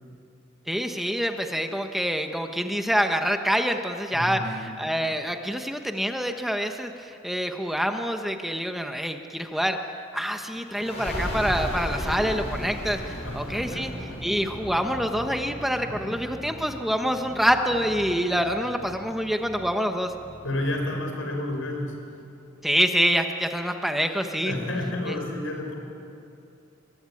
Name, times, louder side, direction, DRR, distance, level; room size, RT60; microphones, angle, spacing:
voice 1, 0.7-9.8 10.1-13.9 14.2-20.1 22.6-24.5 25.1-25.2, equal, ahead, 5 dB, 1.1 m, -26 dB
voice 2, 4.1-4.7 13.2-14.2 16.0-16.1 20.4-22.0 24.4-25.7, left 1 dB, 85° left, 3 dB, 5.6 m, -31 dB
sound 1, 10.7-22.0, equal, 35° left, 6.0 m, -36 dB
24.0 x 23.0 x 9.9 m, 2.7 s
head